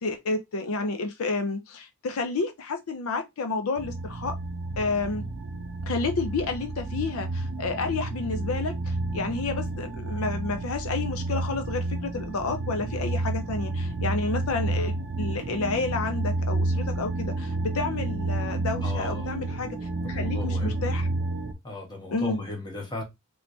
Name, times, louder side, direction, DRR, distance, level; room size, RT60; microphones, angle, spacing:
voice 1, 0.0-4.3 4.8-5.2 5.8-19.8 20.1-21.1 22.1-22.4, left 3 dB, 75° left, 0.5 m, -30 dB
sound 1, 3.8-21.5, right 2 dB, 60° right, 0.5 m, -30 dB
voice 2, 18.8-19.3 20.0-20.9 21.6-23.0, left 2 dB, 20° left, 1.1 m, -36 dB
3.2 x 3.1 x 2.7 m
head